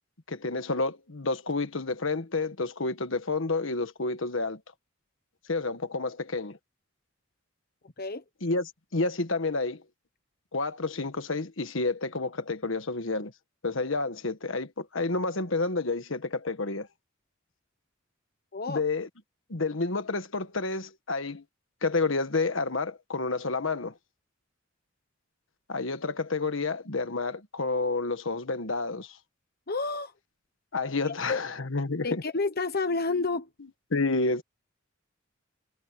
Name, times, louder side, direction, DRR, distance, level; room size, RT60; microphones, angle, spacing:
voice 1, 0.3-4.6 5.5-6.6 8.4-9.8 10.5-13.3 13.6-16.9 18.7-19.1 19.5-21.4 21.8-23.9 25.7-29.2 30.7-32.2 33.9-34.4, left 3 dB, 70° left, 1.4 m, -29 dB
voice 2, 18.5-18.8 29.7-30.1 31.1-31.4 32.0-33.5, left 3 dB, 50° left, 1.1 m, -30 dB
head